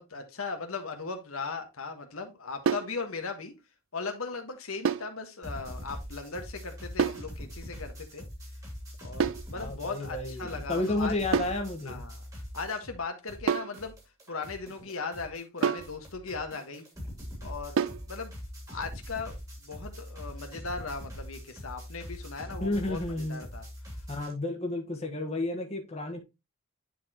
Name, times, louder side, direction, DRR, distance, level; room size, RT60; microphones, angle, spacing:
voice 1, 0.0-3.5 3.9-8.2 9.0-11.1 11.8-12.2 12.5-13.9 14.3-16.8 17.4-18.3 18.7-23.6, left 4 dB, 85° left, 1.5 m, -38 dB
sound 1, 2.7-3.0 4.9-5.2 7.0-7.3 9.2-9.5 11.3-11.6 13.5-13.8 15.6-16.0 17.8-18.1, right 6 dB, 70° right, 0.4 m, -28 dB
sound 2, 5.4-13.0 13.3-24.3, equal, 15° right, 2.4 m, -43 dB
voice 2, 9.5-12.0 22.6-23.4 24.1-26.2, left 2 dB, 30° left, 1.3 m, -32 dB
10.0 x 4.3 x 2.9 m
head